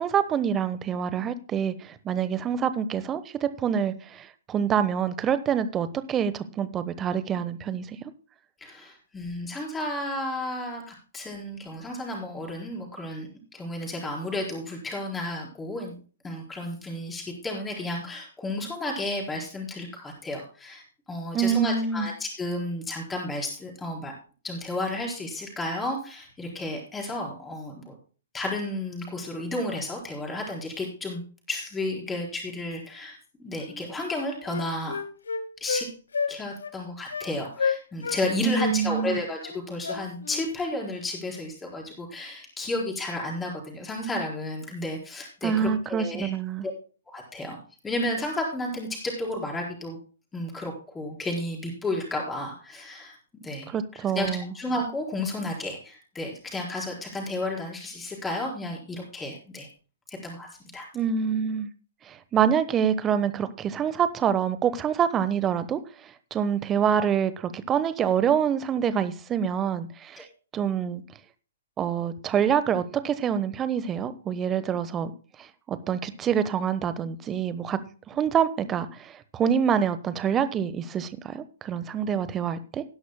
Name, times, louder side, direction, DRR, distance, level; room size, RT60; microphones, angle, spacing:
voice 1, 0.0-8.1 21.3-22.1 38.4-39.2 45.4-46.7 53.7-54.5 60.9-61.7 62.0-70.3 70.5-71.0 71.8-75.1 75.4-77.8 78.1-82.8, right 8 dB, 20° right, 1.1 m, -26 dB
voice 2, 8.6-15.9 16.2-24.1 24.4-28.0 28.3-31.2 31.5-35.0 35.6-35.9 36.3-46.3 47.1-47.6 47.8-50.0 50.3-53.7 54.1-59.7 60.1-60.5 60.7-60.9 70.2-70.3, left 1 dB, 10° left, 4.7 m, -32 dB
Wind instrument woodwind instrument, 33.6-33.8 34.1-35.9 36.1-36.3 36.6-36.8 37.1-37.3 37.6-38.2 38.5-40.4, left 5 dB, 70° left, 1.6 m, -30 dB
19.0 x 11.0 x 2.2 m
figure-of-eight pair, 120°, 0 cm